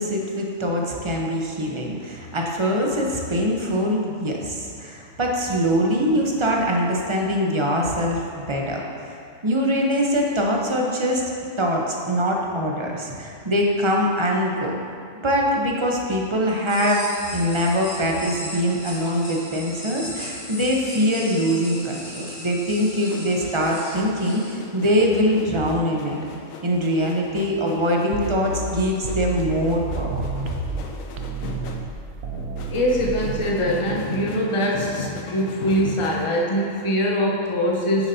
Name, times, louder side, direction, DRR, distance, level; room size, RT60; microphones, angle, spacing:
voice 1, 0.0-9.1 9.4-11.2 11.6-14.8 15.2-17.1 17.3-26.2 26.6-30.3, equal, 25° right, -1 dB, 0.7 m, -23 dB
sound 1, 16.7-24.5, left 1 dB, 60° left, 2.1 m, -37 dB
sound 2, 23.0-36.3, left 4 dB, 85° left, 1.1 m, -37 dB
sound 3, 28.1-30.8 31.2-33.6, right 5 dB, 70° right, 0.9 m, -31 dB
voice 2, 32.7-38.1, equal, 25° left, -2 dB, 0.9 m, -23 dB
9.7 x 7.0 x 2.7 m, 2.3 s
omnidirectional pair, 1.4 m